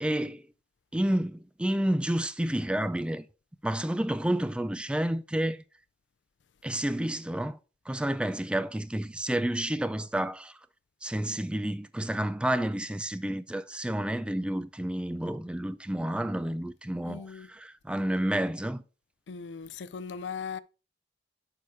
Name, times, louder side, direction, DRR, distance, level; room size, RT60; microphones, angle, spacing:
voice 1, 0.0-0.4 0.9-3.2 3.6-5.6 6.6-7.6 7.9-10.5 11.0-17.2 17.6-18.8, right 1 dB, 5° right, 0.3 m, -30 dB
voice 2, 17.1-17.5 19.3-20.6, left 6 dB, 80° left, 0.4 m, -38 dB
7.0 x 4.7 x 4.6 m
head